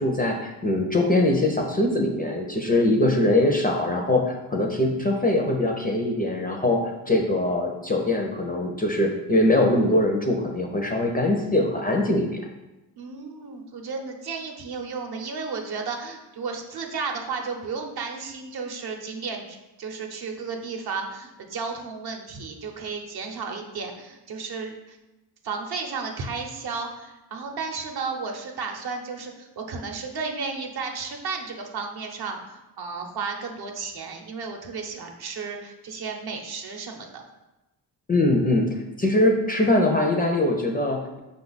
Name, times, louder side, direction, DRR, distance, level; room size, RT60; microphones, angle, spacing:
voice 1, 0.0-6.8 7.1-12.4 38.1-38.7 39.0-41.2, left 1 dB, 20° left, 1 dB, 0.4 m, -22 dB
voice 2, 13.0-25.0 25.4-37.2, right 4 dB, 55° right, 3 dB, 0.8 m, -33 dB
5.2 x 2.4 x 3.9 m, 1.0 s
cardioid pair, 100°, 45 cm